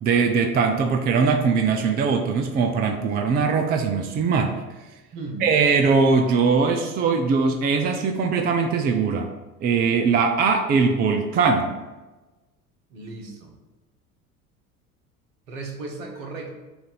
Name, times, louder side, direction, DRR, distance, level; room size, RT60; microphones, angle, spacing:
voice 1, 0.0-4.5 5.4-9.3 9.6-11.7, right 5 dB, 25° right, 5 dB, 0.4 m, -21 dB
voice 2, 5.1-5.5 12.9-13.5 15.5-16.6, right 3 dB, 65° right, 1 dB, 1.3 m, -35 dB
6.7 x 2.6 x 5.6 m, 1.1 s
figure-of-eight pair, 65°, 44 cm